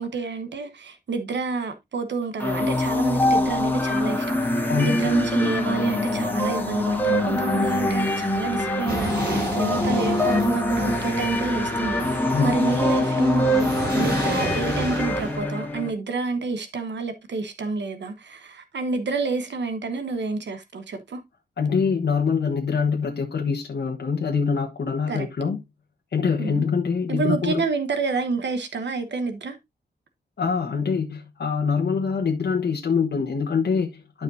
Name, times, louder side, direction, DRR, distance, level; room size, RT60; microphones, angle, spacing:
voice 1, 0.0-21.2 25.1-25.3 26.4-26.6 27.1-29.6, right 4 dB, 75° right, 1.2 m, -29 dB
sound 1, 2.4-15.9, left 1 dB, 10° left, 1.6 m, -24 dB
voice 2, 4.7-5.1 12.3-12.6 21.6-25.6 26.1-27.6 30.4-34.2, left 5 dB, 65° left, 1.3 m, -24 dB
sound 2, 8.9-15.4, right 2 dB, 55° right, 5.9 m, -32 dB
12.0 x 5.1 x 2.7 m
wide cardioid pair, 110°, 19 cm